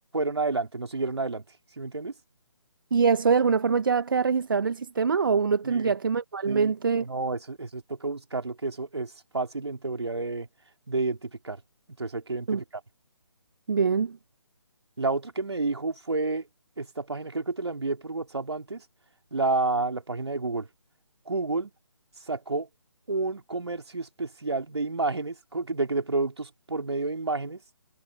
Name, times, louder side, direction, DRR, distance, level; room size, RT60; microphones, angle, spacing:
voice 1, 0.1-1.4 1.8-2.1 5.6-5.9 6.5-10.5 10.9-11.6 12.0-12.8 15.0-16.5 16.8-18.8 19.3-20.7 21.3-21.7 22.3-22.7 23.1-27.6, right 3 dB, 65° right, 4.4 m, -30 dB
voice 2, 2.9-7.0 12.5-12.6 13.7-14.2, right 5 dB, 45° right, 1.3 m, -24 dB
figure-of-eight pair, 145°, 15 cm